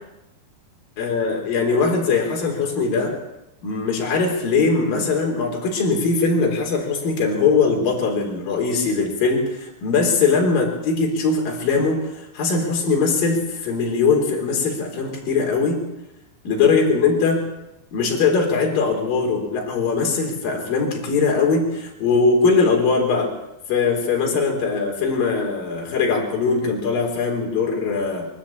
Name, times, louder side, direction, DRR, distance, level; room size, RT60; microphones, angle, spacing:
voice 1, 1.0-3.2 3.6-12.0 12.3-15.8 16.5-17.4 17.9-23.3 23.7-28.3, left 4 dB, 50° left, 0 dB, 5.3 m, -21 dB
24.0 x 13.0 x 8.7 m, 0.91 s
omnidirectional pair, 5.2 m